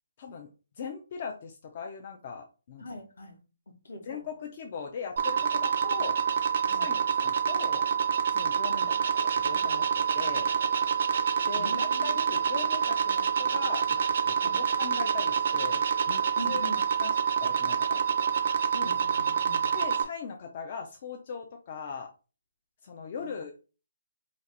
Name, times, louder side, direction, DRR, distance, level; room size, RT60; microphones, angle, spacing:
voice 1, 0.2-0.5 0.8-2.9 4.1-6.2 6.7-7.9 8.3-8.8 9.2-10.5 11.5-16.7 17.0-18.0 19.7-22.1 22.8-23.5, left 6 dB, 30° left, 0.3 m, -40 dB
voice 2, 2.8-3.4 3.8-4.1 6.7-6.9 8.7-8.9 11.5-12.2 14.4-14.6 16.4-16.8 18.7-19.7 23.2-23.4, left 1 dB, 65° left, 0.8 m, -41 dB
sound 1, 5.2-20.0, right 7 dB, 45° right, 0.4 m, -27 dB
2.5 x 2.2 x 4.0 m
hypercardioid pair, 170°, 0 cm